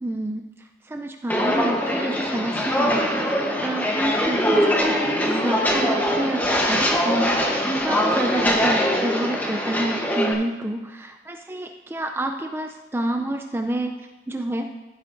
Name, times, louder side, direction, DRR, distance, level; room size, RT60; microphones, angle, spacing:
voice 1, 0.0-14.0 14.3-14.7, right 1 dB, 10° right, 4 dB, 0.3 m, -29 dB
Walk footsteps, 1.3-10.3, equal, 10° left, 0.9 m, -22 dB
14.5 x 8.3 x 2.6 m, 1.2 s
head